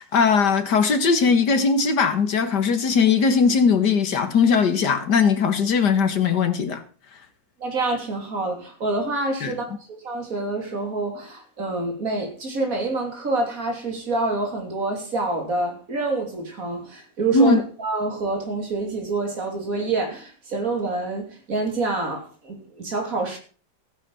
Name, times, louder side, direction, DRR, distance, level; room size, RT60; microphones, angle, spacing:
voice 1, 0.0-6.8 9.4-9.5 17.3-17.6, left 5 dB, 65° left, 2.3 m, -19 dB
voice 2, 7.6-23.4, right 3 dB, 50° right, 3.5 m, -27 dB
15.5 x 9.7 x 5.7 m
omnidirectional pair, 1.9 m